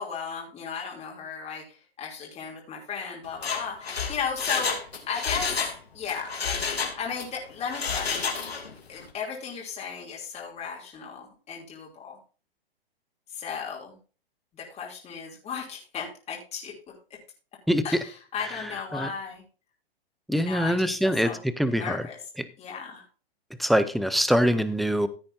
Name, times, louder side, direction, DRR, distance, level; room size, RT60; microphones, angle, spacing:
voice 1, 0.0-4.8 5.1-5.6 5.9-6.4 6.9-8.3 8.9-12.2 13.3-14.0 14.6-16.7 17.8-19.4 20.3-21.4 21.7-22.2 22.6-23.0, left 6 dB, 20° left, -2 dB, 2.9 m, -35 dB
Mechanisms, 3.3-5.8 6.1-7.3 7.7-8.7 9.0-9.1, left 5 dB, 85° left, 2.8 m, -30 dB
voice 2, 18.6-19.1 20.3-22.0 22.4-22.5 23.6-25.1, equal, ahead, 14 dB, 0.5 m, -24 dB
14.5 x 8.5 x 2.7 m, 0.35 s
hypercardioid pair, 125°, 30 cm